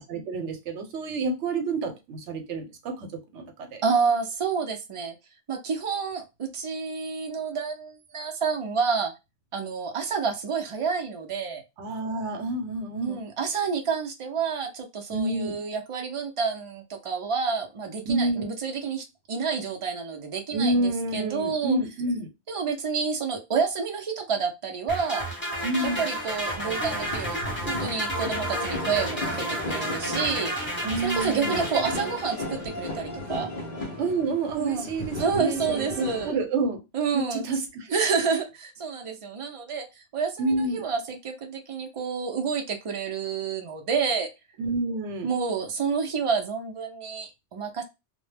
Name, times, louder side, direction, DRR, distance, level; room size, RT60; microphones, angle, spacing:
voice 1, 0.1-3.1 3.3-3.8 11.8-13.2 15.1-15.6 18.1-18.5 20.5-22.3 25.6-26.0 30.8-31.7 34.0-36.8 37.1-37.9 40.4-40.8 44.6-45.3, right 2 dB, 80° right, 1.0 m, -28 dB
voice 2, 3.8-5.2 5.5-9.1 9.5-11.6 13.0-21.8 22.5-25.2 25.8-30.5 31.0-33.5 34.5-34.9 35.2-36.4 36.9-37.5 37.9-44.3 45.2-47.8, right 5 dB, 50° right, 0.4 m, -29 dB
sound 1, 24.9-32.6, right 1 dB, 10° left, 0.9 m, -31 dB
sound 2, 26.3-36.3, left 2 dB, 50° left, 0.6 m, -35 dB
2.1 x 2.0 x 3.2 m
omnidirectional pair, 1.2 m